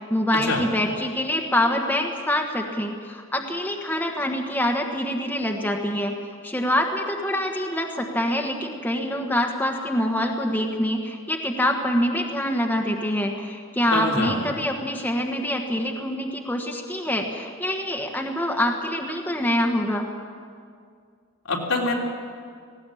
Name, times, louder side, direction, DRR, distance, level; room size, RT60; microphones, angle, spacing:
voice 1, 0.1-6.1 6.4-20.1, left 1 dB, 10° left, 1 dB, 1.4 m, -25 dB
voice 2, 13.9-14.4 21.5-21.9, left 2 dB, 90° left, -2 dB, 3.5 m, -24 dB
18.5 x 17.5 x 8.6 m, 2.1 s
head